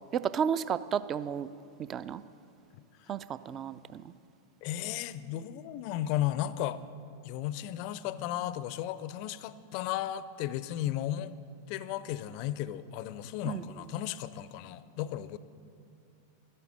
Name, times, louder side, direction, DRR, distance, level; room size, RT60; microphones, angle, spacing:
voice 1, 0.1-1.5 1.9-2.2 3.1-4.1 13.5-13.6, right 8 dB, 30° right, 15 dB, 0.4 m, -32 dB
voice 2, 4.6-6.8 7.2-11.3 11.7-15.4, left 12 dB, 45° left, 16 dB, 0.5 m, -34 dB
12.0 x 11.0 x 7.5 m, 2.5 s
figure-of-eight pair, 90°, 0 cm